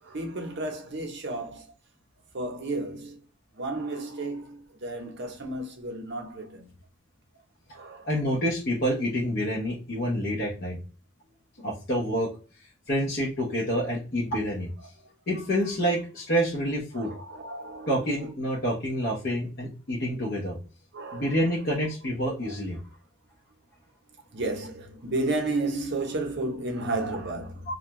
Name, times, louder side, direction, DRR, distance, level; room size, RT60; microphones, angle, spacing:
voice 1, 0.0-1.7 2.3-3.2 3.5-6.7 7.7-8.1 16.9-18.3 20.9-21.8 22.4-22.5 24.3-27.7, right 2 dB, 55° right, 0.6 m, -33 dB
voice 2, 8.0-10.8 11.6-12.3 12.9-14.7 15.3-17.1 17.9-20.6 21.1-22.8 27.7-27.8, equal, 50° left, 0.8 m, -27 dB
2.5 x 2.2 x 2.9 m
head